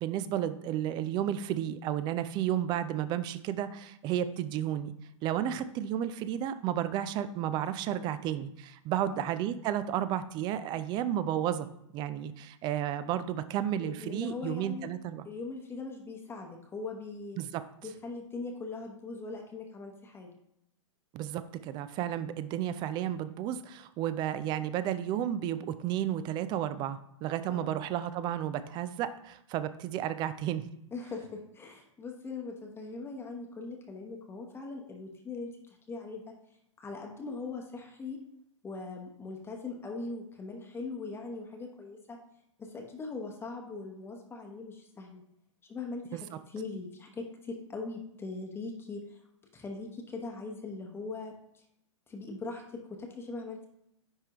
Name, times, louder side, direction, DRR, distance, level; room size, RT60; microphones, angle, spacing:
voice 1, 0.0-4.9 5.2-11.7 11.9-15.3 17.4-17.6 21.1-30.7 46.1-46.4, right 11 dB, 25° right, 13 dB, 0.4 m, -32 dB
voice 2, 13.8-14.9 15.2-17.4 17.8-20.3 27.5-27.8 30.9-36.3 36.8-38.2 38.6-42.2 42.6-45.2 45.7-49.2 49.5-51.3 52.1-53.7, left 3 dB, 15° left, 2 dB, 0.9 m, -41 dB
9.8 x 3.3 x 2.9 m, 0.78 s
hypercardioid pair, 115°, 16 cm